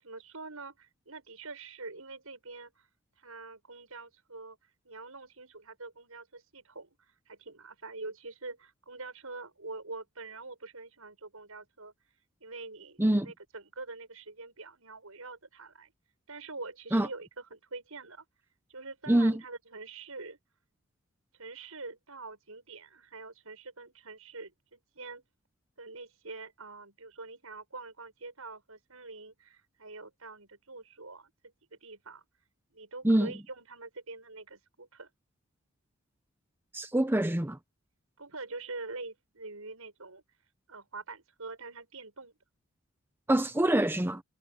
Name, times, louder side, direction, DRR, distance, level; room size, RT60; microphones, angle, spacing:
voice 1, 0.0-2.9 3.2-4.6 4.8-11.9 12.4-15.9 16.3-18.2 18.7-20.4 21.4-25.2 25.8-31.3 31.7-32.3 32.7-35.1 38.2-40.2 40.7-42.3, right 3 dB, 80° right, 7.2 m, -45 dB
voice 2, 19.1-19.4 33.0-33.3 36.7-37.6 43.3-44.2, right 1 dB, 10° right, 0.7 m, -25 dB
head